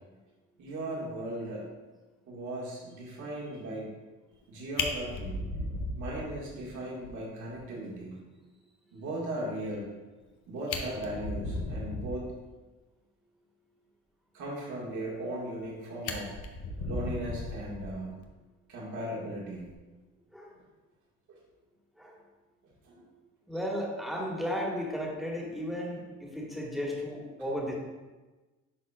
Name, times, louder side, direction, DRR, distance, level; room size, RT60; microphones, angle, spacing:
voice 1, 0.6-1.7 2.3-3.9 4.5-5.4 5.9-8.2 8.9-9.9 10.5-12.3 14.3-16.3 16.8-18.1 18.7-19.7 22.8-23.1, right 1 dB, 75° right, -4 dB, 2.0 m, -37 dB
Fire, 4.3-4.4 4.8-6.7 7.0-7.1 7.5-7.6 8.0-8.1 10.2-10.3 10.6-12.3 15.2-15.7 16.0-18.2 19.5-19.8, left 3 dB, 85° left, 0.8 m, -36 dB
voice 2, 23.5-27.7, equal, ahead, -2 dB, 1.6 m, -34 dB
11.0 x 4.0 x 2.5 m, 1.2 s
cardioid pair, 90°, 30 cm